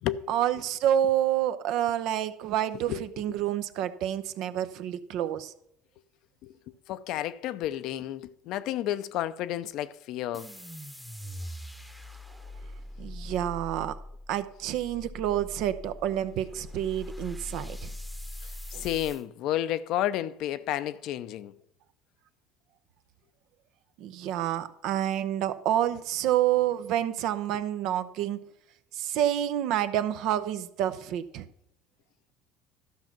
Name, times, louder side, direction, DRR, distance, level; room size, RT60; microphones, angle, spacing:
voice 1, 0.3-5.5 13.0-14.0 14.3-17.9 18.7-18.9 24.0-28.4 28.9-31.5, right 11 dB, 70° right, 0.7 m, -28 dB
voice 2, 6.4-10.5 18.4-21.6 27.5-27.6, left 12 dB, 65° left, 0.6 m, -32 dB
sound 1, 10.3-19.2, left 1 dB, ahead, 0.9 m, -42 dB
12.5 x 5.8 x 5.9 m
supercardioid pair, 85°, 0 cm